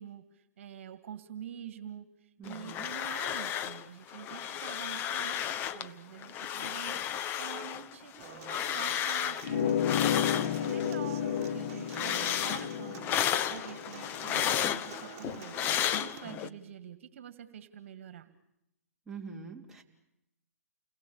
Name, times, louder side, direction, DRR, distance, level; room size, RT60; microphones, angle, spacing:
voice 1, 0.0-18.3, right 9 dB, 55° right, 13 dB, 2.0 m, -46 dB
voice 2, 2.4-2.9 16.2-16.5 19.1-19.8, right 5 dB, 5° right, -2 dB, 3.1 m, -45 dB
sound 1, 2.5-3.8 4.1-5.9 6.2-11.0 11.3-16.5, left 10 dB, 25° left, 1.0 m, -33 dB
Human voice / Acoustic guitar, 8.2-16.2, right 10 dB, 35° right, 2.3 m, -48 dB
sound 2, 9.4-14.7, left 9 dB, 50° left, 1.6 m, -32 dB
29.5 x 21.0 x 8.7 m, 0.83 s
hypercardioid pair, 130°, 8 cm